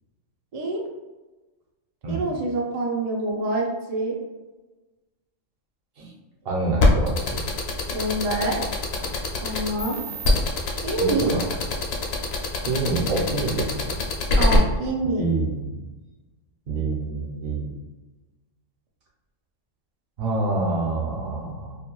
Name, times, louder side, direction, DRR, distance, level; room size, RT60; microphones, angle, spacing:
voice 1, 0.5-0.8 2.1-4.2 7.9-8.6 9.4-10.0 10.8-11.3 14.3-15.2, right 2 dB, 75° right, -1 dB, 0.3 m, -26 dB
voice 2, 6.4-7.4 11.0-11.4 12.6-13.9 14.5-14.6 15.0-15.8 16.7-17.7 20.2-21.8, right 3 dB, 55° right, -2 dB, 0.8 m, -27 dB
sound 1, 6.8-14.6, left 2 dB, 65° left, 0.7 m, -23 dB
2.4 x 2.2 x 3.0 m, 1.1 s
omnidirectional pair, 1.3 m